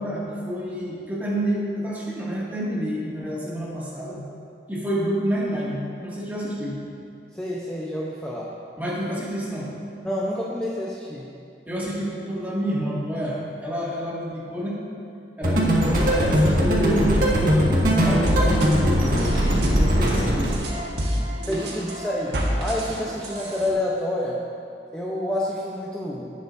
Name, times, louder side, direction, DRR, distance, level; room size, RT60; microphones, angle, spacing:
voice 1, 0.0-4.2 4.7-6.8 8.8-9.7 11.7-14.8 15.4-17.7 18.0-20.7 21.5-21.6, equal, 10° right, -7 dB, 2.1 m, -28 dB
voice 2, 7.3-8.5 10.0-11.3 15.6-15.9 21.5-24.4 24.9-26.3, left 1 dB, 5° left, -5 dB, 0.8 m, -28 dB
sound 1, 15.4-20.5, equal, 50° right, 1.9 m, -20 dB
sound 2, 18.2-23.7, equal, 75° right, 1.4 m, -28 dB
18.0 x 8.1 x 2.7 m, 2.5 s
head